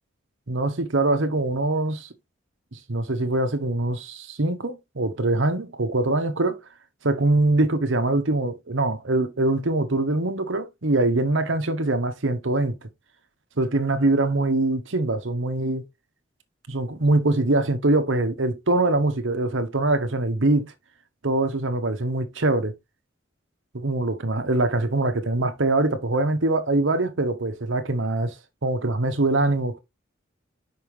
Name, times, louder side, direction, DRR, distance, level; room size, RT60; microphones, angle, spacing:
voice 1, 0.5-2.1 2.7-6.6 7.0-12.9 13.6-15.8 16.7-20.7 21.2-22.7 23.7-28.4 28.6-29.8, right 2 dB, 75° right, 1.1 m, -23 dB
5.6 x 5.5 x 3.2 m
head